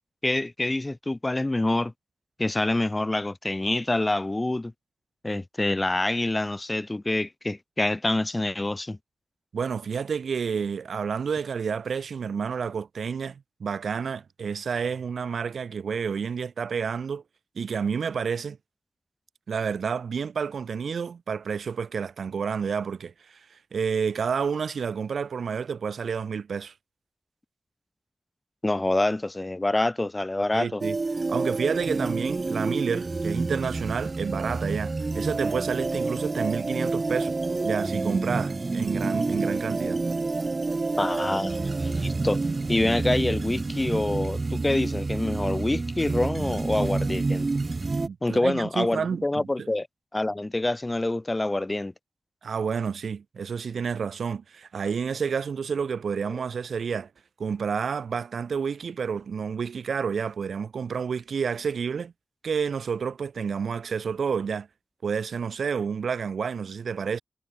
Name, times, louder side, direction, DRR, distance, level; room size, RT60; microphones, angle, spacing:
voice 1, 0.2-1.9 2.4-4.7 5.2-9.0 28.6-30.8 41.0-42.4 42.7-47.5 48.2-49.9 50.1-51.9 56.3-56.4, left 2 dB, 30° left, 0.4 m, -26 dB
voice 2, 9.5-17.2 17.6-18.6 19.5-23.4 23.7-26.7 30.5-31.0 31.3-37.4 37.6-40.0 48.1-49.7 52.4-57.1 57.4-62.1 62.4-64.7 65.0-67.2, right 6 dB, 80° right, 0.7 m, -29 dB
sound 1, 30.8-48.1, right 3 dB, 45° right, 0.3 m, -28 dB
cardioid pair, 40°, 0 cm